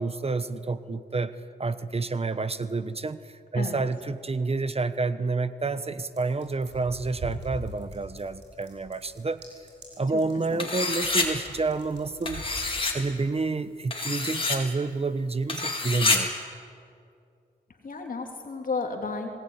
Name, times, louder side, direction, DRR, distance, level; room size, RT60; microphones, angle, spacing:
voice 1, 0.0-9.4 10.0-12.4 12.9-16.3, right 3 dB, 35° right, 13 dB, 1.1 m, -29 dB
sound 1, 6.1-12.7, right 1 dB, 85° right, 7.0 m, -43 dB
voice 2, 10.1-10.6 17.8-19.3, left 4 dB, 50° left, 2 dB, 3.0 m, -33 dB
sound 2, 10.6-11.3 12.3-12.9 13.9-14.6 15.5-16.2, left 3 dB, 30° left, 4.5 m, -27 dB
26.5 x 19.0 x 9.7 m, 2.5 s
cardioid pair, 65°, 18 cm